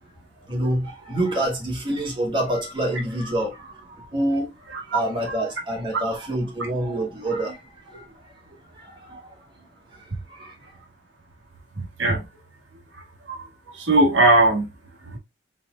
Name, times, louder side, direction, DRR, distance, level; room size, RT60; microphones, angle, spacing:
voice 1, 0.5-8.1 8.7-9.4 9.9-10.7, right 1 dB, 25° right, 2.0 m, -27 dB
voice 2, 11.8-12.2 13.3-13.5 13.7-14.7 15.1-15.2, right 2 dB, 85° right, 1.4 m, -19 dB
4.2 x 4.2 x 2.5 m
head